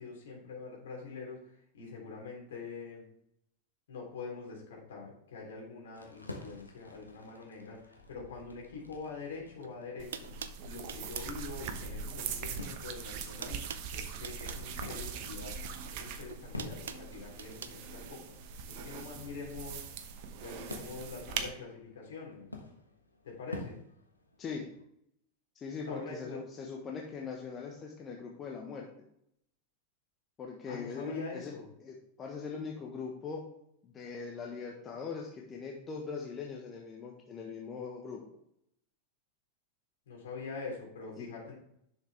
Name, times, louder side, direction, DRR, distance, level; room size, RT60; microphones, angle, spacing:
voice 1, 0.0-3.1 3.9-10.3 10.6-13.6 13.9-18.4 18.7-19.9 20.4-22.5 23.2-23.8 25.9-26.4 30.7-31.7 40.1-41.5, left 4 dB, 60° left, -2 dB, 3.5 m, -44 dB
sound 1, 5.9-24.8, left 2 dB, 85° left, 1.3 m, -51 dB
sound 2, 9.6-9.7 10.1-11.4 12.5-12.9 13.1-14.7 15.8-17.8, right 7 dB, 65° right, 0.6 m, -45 dB
sound 3, 10.0-21.5, right 6 dB, 45° right, 0.9 m, -41 dB
voice 2, 25.5-28.9 30.4-31.5 31.8-33.4 33.8-38.2 41.2-41.3, left 5 dB, 25° left, 0 dB, 1.3 m, -41 dB
10.5 x 6.5 x 3.5 m, 0.73 s
figure-of-eight pair, 90°, 0 cm